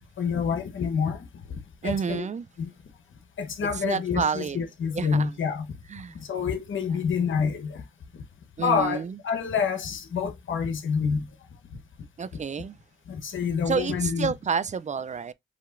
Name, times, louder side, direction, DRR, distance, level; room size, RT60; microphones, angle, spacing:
voice 1, 0.2-1.3 1.8-2.3 2.6-2.7 3.4-5.7 6.3-7.8 8.6-11.3 13.1-14.3, left 6 dB, 75° left, 1.0 m, -27 dB
voice 2, 1.8-2.5 3.8-4.6 5.0-5.3 5.9-6.2 8.6-9.2 12.2-12.8 13.7-15.3, right 6 dB, 35° right, 0.4 m, -29 dB
7.3 x 2.8 x 2.5 m
cardioid pair, 60°, 20 cm